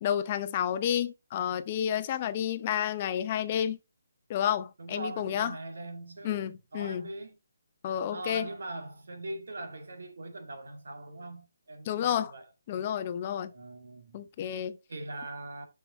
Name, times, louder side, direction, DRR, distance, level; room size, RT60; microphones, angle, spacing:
voice 1, 0.0-3.8 4.3-5.5 6.2-7.0 7.8-8.5 11.9-12.3 12.7-13.5 14.1-14.8, left 10 dB, 35° left, 0.7 m, -30 dB
voice 2, 4.8-7.4 8.1-12.5 13.5-14.3 14.9-15.7, right 2 dB, 75° right, 2.2 m, -41 dB
6.7 x 5.8 x 4.0 m
hypercardioid pair, 155°, 0 cm